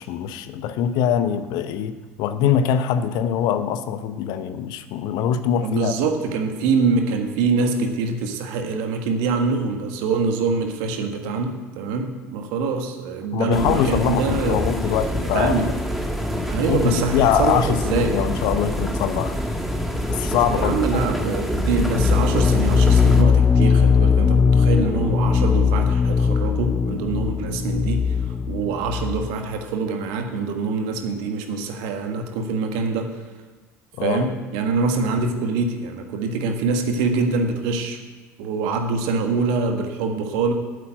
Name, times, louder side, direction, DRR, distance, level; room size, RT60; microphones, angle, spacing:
voice 1, 0.0-5.9 13.3-15.7 16.7-19.3 20.1-20.9 34.0-34.3, left 9 dB, 60° left, 11 dB, 0.8 m, -23 dB
voice 2, 5.6-14.7 15.3-15.7 16.5-18.2 20.5-33.1 34.0-38.0 38.4-40.5, right 4 dB, 65° right, 5 dB, 1.5 m, -24 dB
sound 1, 13.5-23.2, equal, ahead, 1.7 m, -26 dB
sound 2, 21.8-29.4, left 6 dB, 15° left, 0.4 m, -19 dB
8.6 x 8.2 x 8.8 m, 1.3 s
figure-of-eight pair, 60°, 8 cm